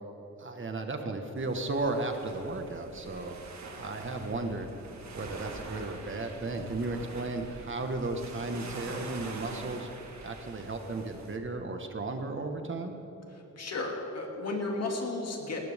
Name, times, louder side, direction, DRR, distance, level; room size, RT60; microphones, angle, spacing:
voice 1, 0.4-3.4 3.8-4.7 5.1-9.9 10.2-12.9, right 2 dB, 45° right, 5 dB, 1.6 m, -34 dB
sound 1, 1.4-11.4, right 3 dB, 70° right, 2.1 m, -45 dB
voice 2, 13.6-15.6, left 2 dB, 60° left, 0 dB, 2.7 m, -33 dB
19.5 x 19.0 x 3.7 m, 3.0 s
wide cardioid pair, 120°, 29 cm